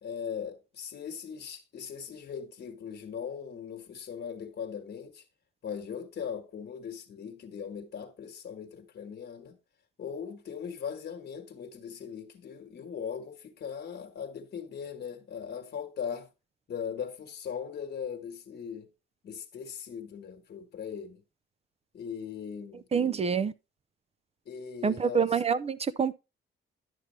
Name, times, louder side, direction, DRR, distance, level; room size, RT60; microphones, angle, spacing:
voice 1, 0.0-5.2 5.6-9.6 10.0-16.3 16.7-18.9 19.2-21.2 21.9-22.9 24.4-25.4, left 7 dB, 60° left, 1.3 m, -39 dB
voice 2, 22.9-23.5 24.8-26.2, right 6 dB, 30° right, 0.5 m, -26 dB
11.0 x 6.6 x 3.1 m
cardioid pair, 90°, 20 cm